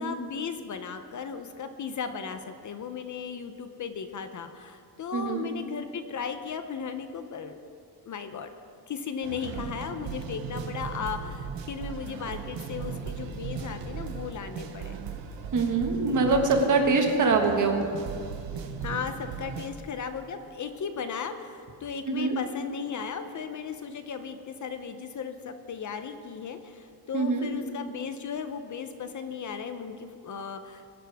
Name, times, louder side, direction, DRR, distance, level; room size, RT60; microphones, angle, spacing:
voice 1, 0.0-7.6 8.0-8.5 8.9-15.0 18.8-30.9, left 6 dB, 45° left, 8 dB, 0.6 m, -36 dB
voice 2, 5.1-5.5 15.5-17.9 22.1-22.3 27.1-27.5, right 3 dB, 45° right, 3 dB, 1.6 m, -24 dB
sound 1, 9.2-19.7, right 6 dB, 85° right, 1.2 m, -37 dB
21.5 x 11.0 x 3.5 m, 2.3 s
wide cardioid pair, 180°, 43 cm